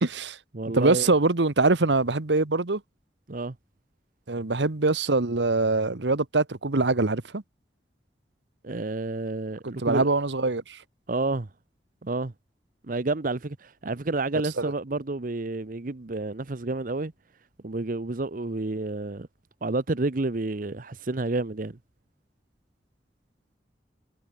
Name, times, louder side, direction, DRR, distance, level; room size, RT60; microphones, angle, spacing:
voice 1, 0.0-0.4 0.7-2.8 4.3-7.4 9.6-10.8 14.6-14.7, right 3 dB, 85° right, 1.3 m, -23 dB
voice 2, 0.5-1.1 3.3-3.5 8.6-10.1 11.1-11.5 12.0-12.3 12.9-17.1 17.6-19.3 19.6-21.8, right 2 dB, 50° right, 0.9 m, -30 dB
head